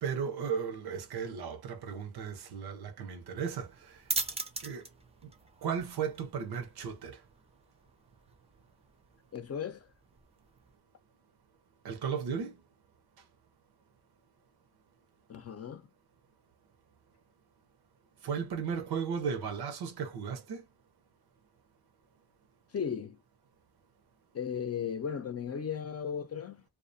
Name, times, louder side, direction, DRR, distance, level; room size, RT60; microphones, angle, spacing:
voice 1, 0.0-4.0 4.6-4.9 5.2-5.3 5.6-7.2 11.8-12.6 18.2-20.7, right 6 dB, 85° right, 0.7 m, -35 dB
sound 1, 3.5-10.8, right 3 dB, 15° right, 0.5 m, -42 dB
voice 2, 9.3-9.9 15.3-15.9 22.7-23.2 24.3-26.6, left 7 dB, 40° left, 0.5 m, -36 dB
2.4 x 2.2 x 2.5 m
cardioid pair, 75°, 37 cm